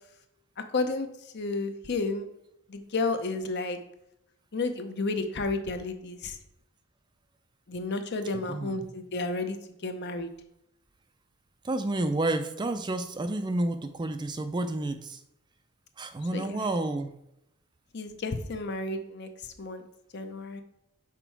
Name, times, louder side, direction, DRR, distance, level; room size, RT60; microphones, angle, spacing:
voice 1, 0.7-1.1 1.3-2.3 2.7-3.8 4.5-6.4 7.7-9.6 9.8-10.3 16.3-16.7 17.9-19.3 19.6-19.9 20.1-20.6, left 3 dB, 50° left, 7 dB, 0.7 m, -31 dB
voice 2, 8.3-8.9 11.6-15.2 16.0-17.1, right 2 dB, 20° right, 8 dB, 0.4 m, -30 dB
6.0 x 4.5 x 4.6 m, 0.82 s
head